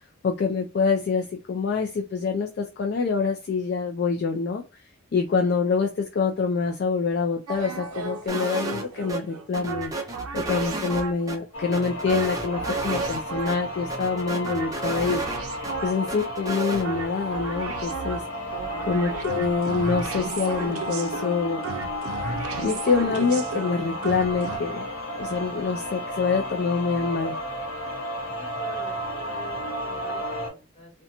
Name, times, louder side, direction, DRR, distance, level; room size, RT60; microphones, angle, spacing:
voice 1, 0.2-4.8 5.1-18.2 18.9-21.6 22.6-24.8 25.2-27.4, left 5 dB, 50° left, 3 dB, 0.3 m, -26 dB
sound 1, 7.5-11.4 12.1-13.8 14.4-16.2 16.8-24.6, right 4 dB, 85° right, 0.5 m, -35 dB
sound 2, 8.3-8.8 9.1-9.2 9.5-11.4 11.7-13.2 13.5-13.6 13.9-15.7 16.1-16.8, right 2 dB, 15° right, 0.5 m, -31 dB
sound 3, 11.5-30.5, equal, 70° left, 0.8 m, -33 dB
voice 2, 18.6-19.0 28.4-30.9, left 3 dB, 30° left, 0 dB, 1.2 m, -45 dB
2.8 x 2.1 x 2.5 m, 0.32 s
head